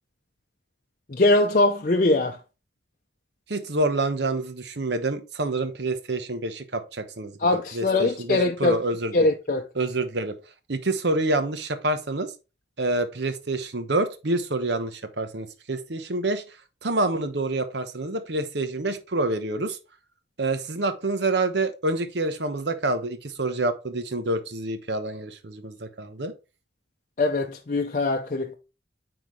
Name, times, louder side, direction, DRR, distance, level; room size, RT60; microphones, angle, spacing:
voice 1, 1.1-2.4 7.4-8.8 9.1-9.6 27.2-28.6, left 2 dB, 45° left, 0.6 m, -22 dB
voice 2, 3.5-7.3 7.7-9.3 9.7-10.4 10.7-12.3 12.8-16.4 16.8-19.8 20.4-26.3, right 2 dB, 70° right, 1.0 m, -27 dB
8.9 x 4.0 x 3.1 m
head